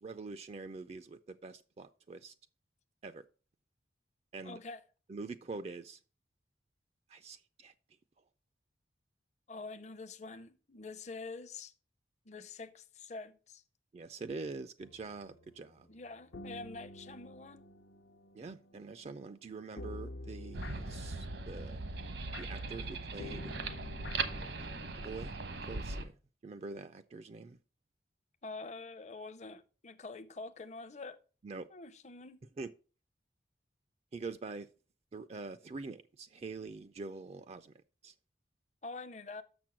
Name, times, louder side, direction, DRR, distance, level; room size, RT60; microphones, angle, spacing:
voice 1, 0.0-2.3 3.0-3.2 4.3-4.6 5.1-6.0 7.1-7.7 13.9-15.9 18.3-21.8 22.4-23.5 24.6-25.3 25.6-26.2 26.4-27.6 31.4-31.7 32.6-32.7 34.1-34.7 35.1-37.7 38.0-38.1, right 3 dB, 35° right, 0.3 m, -45 dB
voice 2, 4.4-4.8 9.5-11.7 12.3-13.6 15.9-17.7 28.4-31.2 31.7-32.4 38.8-39.4, left 3 dB, 40° left, 0.6 m, -46 dB
sound 1, 14.8-25.3, left 2 dB, 80° left, 0.7 m, -50 dB
sound 2, 20.5-26.0, right 3 dB, 80° right, 1.0 m, -39 dB
6.7 x 6.0 x 5.9 m
head